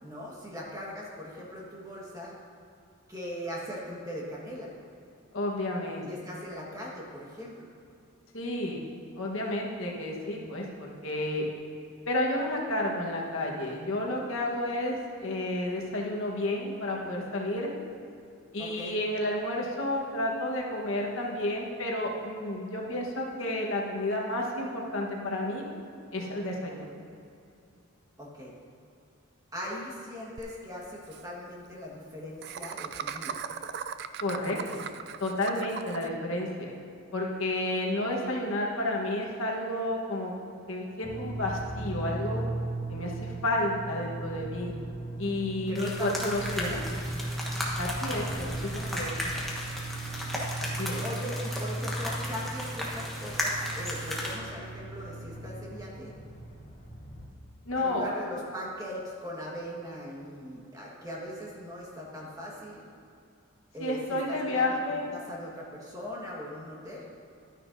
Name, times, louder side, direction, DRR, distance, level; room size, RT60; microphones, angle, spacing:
voice 1, 0.0-2.3 3.1-4.7 6.1-7.7 18.6-19.0 28.2-28.5 29.5-33.4 45.7-46.8 51.0-56.1 57.8-62.8 63.7-64.8 65.1-67.0, equal, 15° right, -4 dB, 1.5 m, -40 dB
voice 2, 5.3-6.1 8.3-8.8 9.2-11.5 12.1-17.7 18.5-25.6 26.1-26.9 34.2-34.8 35.2-36.7 37.1-40.3 40.7-42.4 42.9-44.7 45.2-47.0 47.8-49.3 50.8-51.0 57.7-58.0 63.8-65.0, left 1 dB, 70° left, -1 dB, 1.3 m, -31 dB
Laughter, 30.4-30.5 30.7-30.8 31.0-31.2 32.4-36.1, right 7 dB, 50° right, 0.3 m, -38 dB
sound 1, 41.0-57.3, right 2 dB, 45° left, 2.5 m, -37 dB
sound 2, 45.7-54.4, left 1 dB, ahead, 1.1 m, -35 dB
12.0 x 9.7 x 2.7 m, 2.5 s
head